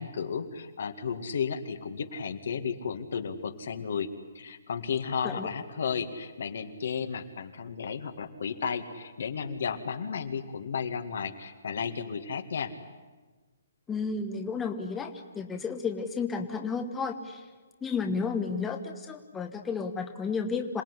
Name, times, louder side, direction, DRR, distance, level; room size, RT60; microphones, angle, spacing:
voice 1, 0.0-4.1 4.3-12.7, left 6 dB, 70° left, 7 dB, 2.1 m, -33 dB
voice 2, 13.9-17.4 17.8-20.8, left 5 dB, 10° left, 4 dB, 1.3 m, -32 dB
27.0 x 18.0 x 10.0 m, 1.3 s
hypercardioid pair, 155°, 0 cm